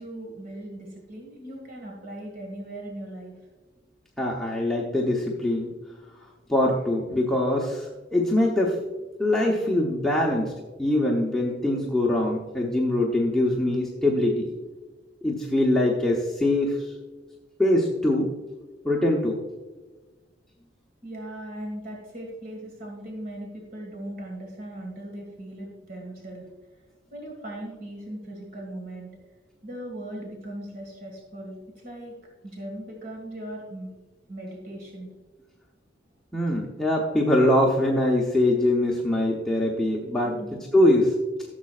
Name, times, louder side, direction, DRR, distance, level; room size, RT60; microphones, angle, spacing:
voice 1, 0.0-3.3 21.0-26.5 27.1-29.1 29.6-32.1 32.4-33.9 34.3-35.1 40.2-40.7, right 1 dB, 50° right, 0 dB, 1.9 m, -38 dB
voice 2, 4.2-5.7 6.5-8.8 9.2-10.5 10.8-14.5 15.2-16.9 17.6-18.3 18.8-19.4 36.3-40.4 40.7-41.1, left 1 dB, 5° left, -4 dB, 0.9 m, -23 dB
14.5 x 7.4 x 2.4 m, 1.2 s
head